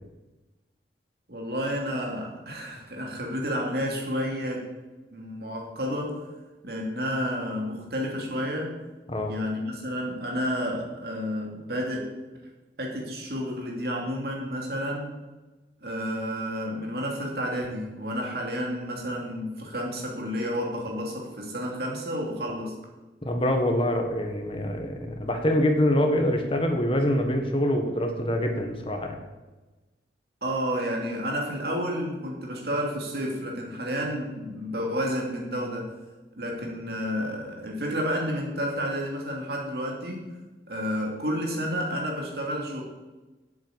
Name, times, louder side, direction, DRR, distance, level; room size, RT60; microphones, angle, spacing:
voice 1, 1.3-4.7 5.1-6.3 6.6-8.7 9.3-12.1 12.8-15.1 15.8-22.8 30.4-35.9 36.4-40.3 40.7-42.8, equal, 60° right, 0 dB, 2.7 m, -30 dB
voice 2, 23.2-29.2, left 1 dB, 30° left, 3 dB, 1.6 m, -25 dB
8.2 x 7.9 x 8.1 m, 1.2 s
head